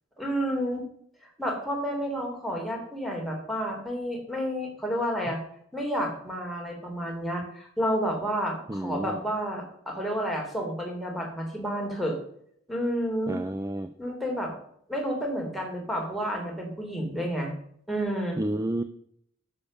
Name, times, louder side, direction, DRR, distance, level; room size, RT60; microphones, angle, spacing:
voice 1, 0.2-0.8 1.2-5.4 5.7-12.2 12.7-13.4 14.0-14.5 14.9-17.5 17.9-18.4, equal, ahead, -1 dB, 3.3 m, -30 dB
voice 2, 8.7-9.2 13.3-13.9 18.4-18.8, right 1 dB, 15° right, 11 dB, 0.5 m, -30 dB
11.5 x 7.4 x 6.6 m, 0.68 s
head